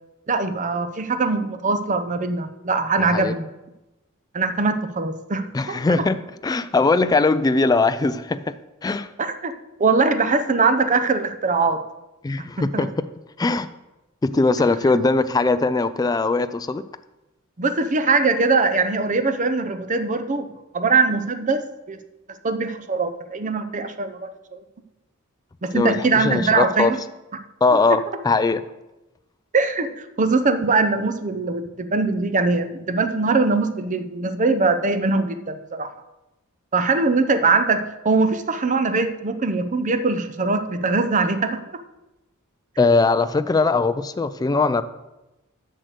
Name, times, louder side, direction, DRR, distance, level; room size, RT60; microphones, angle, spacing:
voice 1, 0.3-3.4 4.3-5.8 9.2-9.5 9.8-11.8 12.6-12.9 17.6-20.5 20.7-21.6 21.9-22.0 22.4-24.6 25.6-27.0 27.9-28.0 29.5-35.9 36.7-41.6, right 3 dB, 35° right, 9 dB, 0.7 m, -21 dB
voice 2, 5.5-8.5 8.8-9.1 12.2-12.9 13.4-13.7 14.2-16.8 25.7-26.9 27.6-28.6 42.8-44.8, left 3 dB, 20° left, 12 dB, 0.3 m, -20 dB
7.6 x 6.5 x 6.5 m, 1.0 s
head